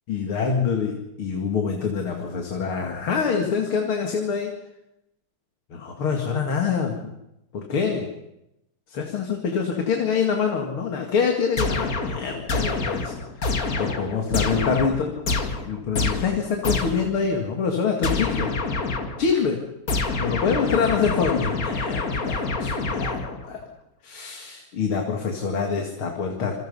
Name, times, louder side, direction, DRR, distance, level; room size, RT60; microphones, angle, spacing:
voice 1, 0.1-4.5 5.7-7.0 7.5-8.1 8.9-13.1 13.8-15.2 15.7-18.5 19.2-19.6 20.2-23.6 24.0-26.5, left 6 dB, 85° left, 2 dB, 3.2 m, -25 dB
sound 1, 11.6-17.2 18.0-19.3 19.9-23.6, left 3 dB, 45° left, 2.3 m, -27 dB
28.0 x 25.0 x 5.6 m, 0.89 s
omnidirectional pair, 2.3 m